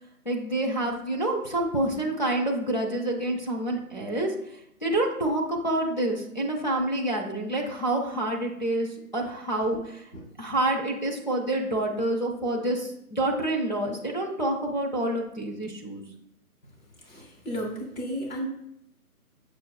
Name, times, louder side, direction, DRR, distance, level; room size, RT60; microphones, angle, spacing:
voice 1, 0.2-10.1 10.4-16.0, right 1 dB, 35° left, -1 dB, 0.4 m, -28 dB
voice 2, 17.0-18.5, equal, 60° left, -1 dB, 1.1 m, -34 dB
6.3 x 2.2 x 2.2 m, 0.77 s
figure-of-eight pair, 145°, 46 cm